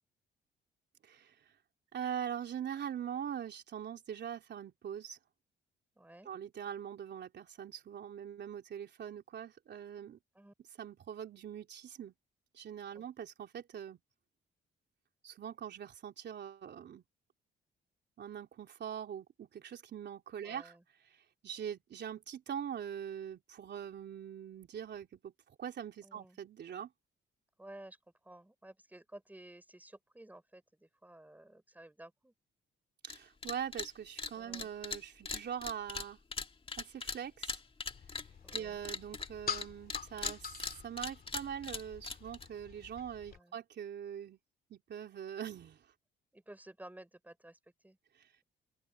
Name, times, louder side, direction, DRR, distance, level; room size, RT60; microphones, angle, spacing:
voice 1, 1.0-1.5 1.9-5.2 6.2-10.2 10.8-12.1 12.5-14.0 15.2-17.0 18.2-20.7 21.1-26.9 33.0-36.2 36.8-37.6 38.5-40.6 40.8-44.4 44.7-45.9 48.1-48.3, right 9 dB, 60° right, 3.4 m, -43 dB
voice 2, 5.9-6.3 10.3-10.5 12.9-13.0 20.4-20.8 26.0-26.4 27.6-28.0 28.2-32.3 34.3-34.7 38.4-38.8 43.3-43.6 46.3-48.0, right 1 dB, 10° right, 5.9 m, -54 dB
sound 1, 33.0-33.2 33.4-33.9 34.2-39.6 39.9-42.5, left 4 dB, 25° left, 2.1 m, -40 dB
sound 2, 37.9-43.4, left 7 dB, 50° left, 2.8 m, -46 dB
open air
cardioid pair, 90°, 20 cm